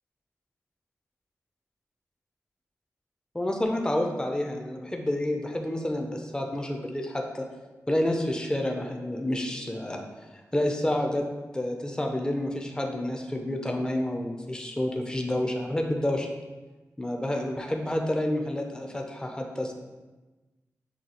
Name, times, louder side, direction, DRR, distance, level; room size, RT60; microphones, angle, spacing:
voice 1, 3.3-7.5 7.9-10.0 10.5-11.2 11.5-16.3 17.0-19.7, left 1 dB, 15° left, 2 dB, 0.5 m, -29 dB
5.8 x 2.2 x 3.9 m, 1.2 s
cardioid pair, 55°, 6 cm